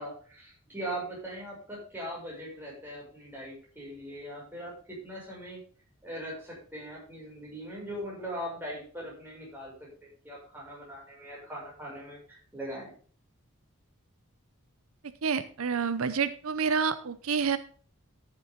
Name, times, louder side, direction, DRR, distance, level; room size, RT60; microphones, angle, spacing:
voice 1, 0.0-5.6 6.0-12.9, right 1 dB, 10° right, -4 dB, 6.3 m, -40 dB
voice 2, 15.2-17.6, right 6 dB, 80° right, 13 dB, 0.7 m, -28 dB
13.5 x 7.4 x 3.8 m, 0.42 s
head